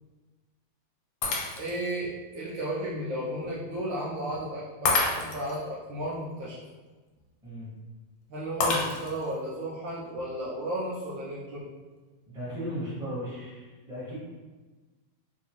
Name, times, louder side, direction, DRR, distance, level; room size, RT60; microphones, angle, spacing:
Shatter, 1.2-1.9 2.5-2.6 4.8-5.6 8.6-9.3, left 3 dB, 75° left, 1.2 m, -28 dB
voice 1, 1.6-6.6 8.3-11.7, right 1 dB, 70° right, -7 dB, 1.2 m, -33 dB
voice 2, 12.3-14.1, equal, 5° right, -11 dB, 0.9 m, -36 dB
3.4 x 2.8 x 2.9 m, 1.3 s
omnidirectional pair, 2.4 m